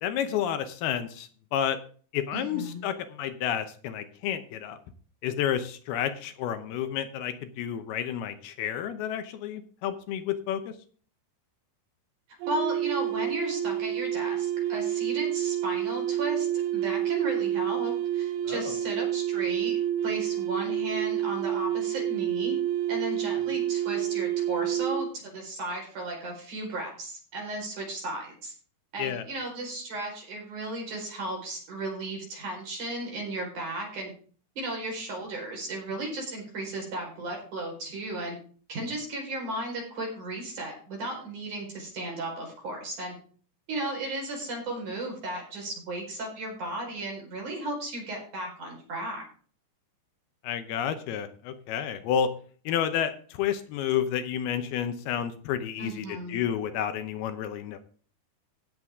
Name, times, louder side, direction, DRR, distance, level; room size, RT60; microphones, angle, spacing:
voice 1, 0.0-1.8 2.1-4.8 5.2-10.7 18.5-18.8 29.0-29.2 50.4-52.3 52.7-57.8, left 9 dB, 75° left, 9 dB, 2.8 m, -30 dB
voice 2, 2.3-2.9 12.5-22.6 22.9-28.5 28.9-34.1 34.6-38.4 38.7-43.1 43.7-49.2 55.8-56.4, right 1 dB, 50° right, 0 dB, 6.0 m, -35 dB
sound 1, 12.4-25.1, right 11 dB, 85° right, 1.9 m, -29 dB
17.0 x 7.5 x 3.6 m, 0.43 s
omnidirectional pair, 4.7 m